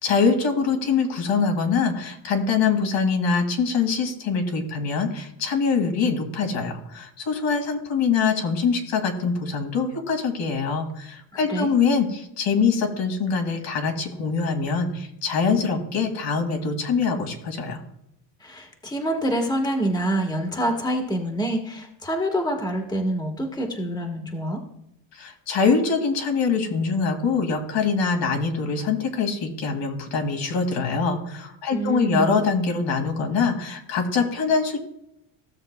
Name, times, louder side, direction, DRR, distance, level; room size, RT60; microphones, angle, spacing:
voice 1, 0.0-17.8 25.1-34.8, left 5 dB, 65° left, 4 dB, 2.2 m, -24 dB
voice 2, 11.3-11.7 18.4-24.6 31.7-32.3, right 1 dB, 10° left, 3 dB, 1.3 m, -26 dB
15.5 x 6.9 x 2.2 m, 0.79 s
cardioid pair, 115°, 48 cm